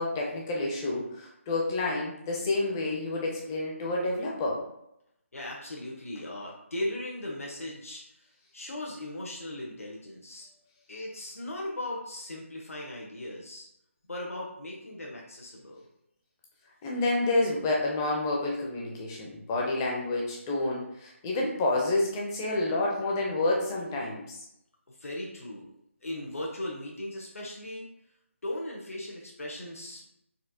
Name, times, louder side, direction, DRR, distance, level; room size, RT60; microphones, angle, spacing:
voice 1, 0.0-4.6 16.8-24.4, left 2 dB, 15° left, -2 dB, 0.5 m, -29 dB
voice 2, 5.3-8.2 8.5-10.5 10.9-13.7 14.1-15.8 24.9-25.7 26.0-27.9 28.4-30.1, left 1 dB, 80° left, -3 dB, 1.0 m, -38 dB
4.2 x 2.3 x 2.7 m, 0.79 s
figure-of-eight pair, 165°, 7 cm